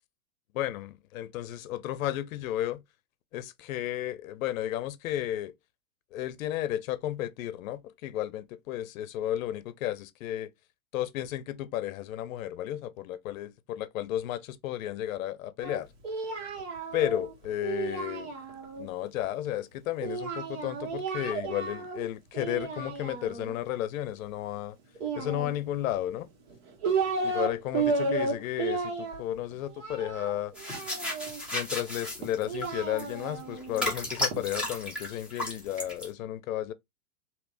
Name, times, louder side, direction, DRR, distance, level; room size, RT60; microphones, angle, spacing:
voice 1, 0.5-2.8 3.3-5.5 6.1-10.5 10.9-15.9 16.9-18.3 18.8-24.8 25.2-26.3 27.2-30.5 31.5-36.7, left 12 dB, 65° left, 0.6 m, -33 dB
Singing, 15.6-18.9 20.0-22.0 22.3-23.6 25.0-25.9 26.5-27.5 27.7-31.4 32.2-34.4, right 4 dB, 50° right, 1.5 m, -33 dB
sound 1, 30.5-36.1, left 1 dB, ahead, 0.8 m, -34 dB
3.4 x 2.8 x 2.5 m
supercardioid pair, 160°, 44 cm